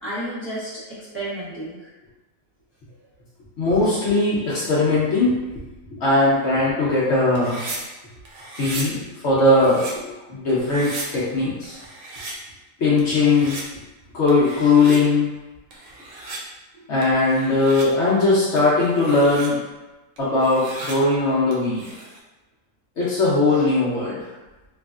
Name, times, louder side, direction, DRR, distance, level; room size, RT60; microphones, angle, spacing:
voice 1, 0.0-1.9 16.7-16.9, right 1 dB, 10° right, -11 dB, 1.0 m, -32 dB
voice 2, 3.6-5.4 5.9-7.6 8.5-11.8 12.8-13.6 14.1-15.3 16.9-19.6 20.2-21.9 23.0-24.2, left 2 dB, 60° left, -8 dB, 0.9 m, -19 dB
sound 1, 7.4-7.8 8.3-8.9 9.4-9.9 10.5-11.1 11.6-12.3 13.0-13.6 14.3-15.0 15.7-16.4 17.0-17.9 18.6-19.5 20.2-20.9 21.5-22.2, right 2 dB, 70° right, 0.9 m, -36 dB
3.2 x 2.4 x 2.4 m, 1.1 s
omnidirectional pair, 1.4 m